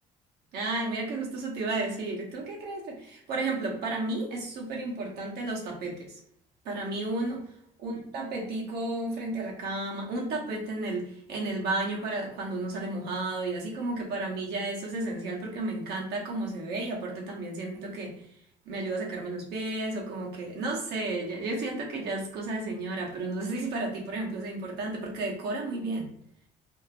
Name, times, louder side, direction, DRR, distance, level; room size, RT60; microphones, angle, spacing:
voice 1, 0.5-6.2 6.6-7.5 7.8-18.2 18.7-26.1, right 2 dB, 75° right, -1 dB, 1.0 m, -32 dB
2.8 x 2.4 x 2.8 m, 0.65 s
supercardioid pair, 85°, 17 cm